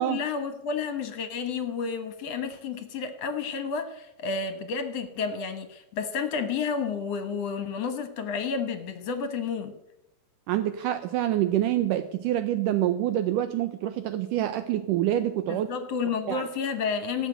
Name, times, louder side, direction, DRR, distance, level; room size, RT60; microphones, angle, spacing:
voice 1, 0.0-9.8 15.5-17.3, left 5 dB, 60° left, 9 dB, 1.8 m, -31 dB
voice 2, 10.5-15.7 16.3-16.4, right 12 dB, 75° right, 10 dB, 2.1 m, -26 dB
18.0 x 6.7 x 8.9 m, 0.86 s
omnidirectional pair, 4.1 m